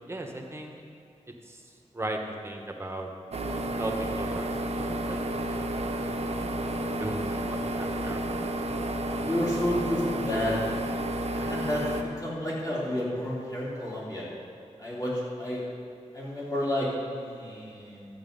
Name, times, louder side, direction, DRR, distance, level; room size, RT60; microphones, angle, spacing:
voice 1, 0.1-0.8 1.5-1.6 1.9-3.1 3.8-4.5 4.8-5.7 7.0-8.3, right 1 dB, 20° right, 2 dB, 1.1 m, -36 dB
sound 1, 3.3-12.0, right 1 dB, 60° right, 0.9 m, -31 dB
voice 2, 9.2-10.5 11.3-14.3 14.8-15.1 15.4-15.6 16.1-18.1, left 1 dB, 30° left, -7 dB, 3.2 m, -31 dB
12.0 x 8.1 x 5.3 m, 2.4 s
wide cardioid pair, 120°, 12 cm